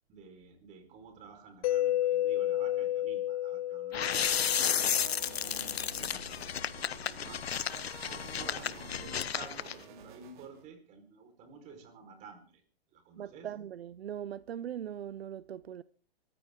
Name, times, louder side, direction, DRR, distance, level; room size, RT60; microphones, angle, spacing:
voice 1, 0.1-5.0 5.4-7.5 8.0-12.6 12.9-13.5, right 5 dB, 25° right, 4.4 m, -51 dB
Mallet percussion, 1.6-5.4, left 13 dB, 35° left, 0.7 m, -32 dB
Sci-Fi - Effects - Interference servo filtered, 3.9-9.7, left 9 dB, 85° left, 1.0 m, -32 dB
sound 1, 4.1-10.6, right 8 dB, 55° right, 2.7 m, -50 dB
voice 2, 13.2-15.8, right 10 dB, 80° right, 0.7 m, -40 dB
23.5 x 14.0 x 3.7 m
hypercardioid pair, 150°, 30 cm